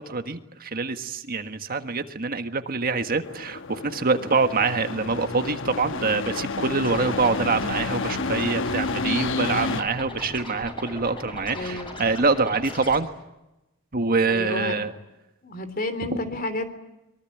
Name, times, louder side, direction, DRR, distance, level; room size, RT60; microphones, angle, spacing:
voice 1, 0.0-13.1 13.9-14.9, right 4 dB, 45° right, 8 dB, 1.6 m, -25 dB
sound 1, 3.2-9.8, left 3 dB, 65° left, 1.1 m, -30 dB
Scratching (performance technique), 6.8-13.0, left 1 dB, 25° left, 7.4 m, -39 dB
voice 2, 11.5-12.1 14.2-14.8 15.4-16.7, left 2 dB, 45° left, 10 dB, 3.4 m, -31 dB
24.0 x 23.5 x 9.2 m, 0.95 s
head